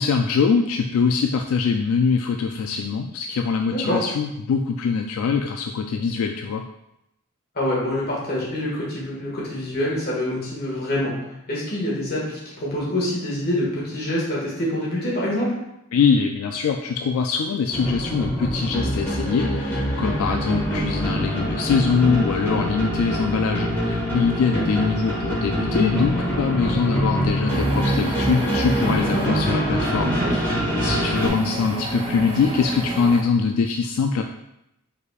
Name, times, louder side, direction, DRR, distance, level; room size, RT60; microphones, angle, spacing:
voice 1, 0.0-6.6 15.9-34.2, left 5 dB, 85° left, 4 dB, 0.3 m, -23 dB
voice 2, 3.7-4.0 7.5-11.1 11.5-15.5 20.6-20.7 24.5-24.6 29.1-29.5, left 1 dB, 45° left, -5 dB, 1.7 m, -26 dB
sound 1, 17.7-31.3, equal, 10° left, 1.2 m, -24 dB
sound 2, 26.6-26.8 27.5-29.3 30.0-30.4 31.1-33.2, right 1 dB, 25° right, 0.5 m, -29 dB
5.4 x 4.1 x 2.3 m, 0.84 s
head